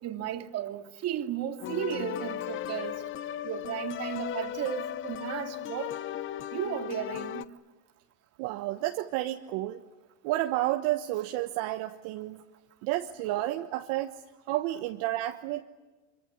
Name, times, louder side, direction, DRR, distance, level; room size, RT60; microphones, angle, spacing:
voice 1, 0.0-3.0 3.4-5.9 6.5-7.5, right 10 dB, 40° right, 2.3 m, -34 dB
sound 1, 1.6-7.5, left 11 dB, 35° left, 0.8 m, -36 dB
voice 2, 8.4-9.8 10.2-12.4 12.8-14.2 14.5-15.6, right 15 dB, 60° right, 1.3 m, -31 dB
25.0 x 24.0 x 9.9 m
supercardioid pair, 125°, 37 cm